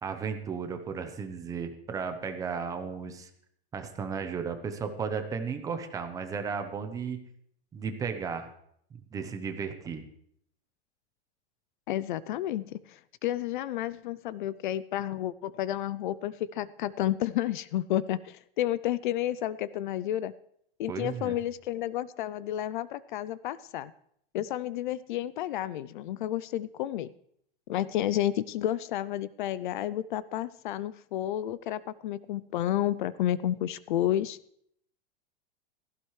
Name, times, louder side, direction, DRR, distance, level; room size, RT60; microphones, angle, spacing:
voice 1, 0.0-3.3 3.7-7.2 7.7-8.5 8.9-10.0 20.9-21.4, right 6 dB, 10° right, 7 dB, 0.7 m, -34 dB
voice 2, 11.9-20.3 20.8-23.9 24.3-27.1 27.7-34.4, left 12 dB, 55° left, 18 dB, 0.4 m, -31 dB
16.0 x 15.0 x 3.2 m, 0.69 s
supercardioid pair, 170°, 31 cm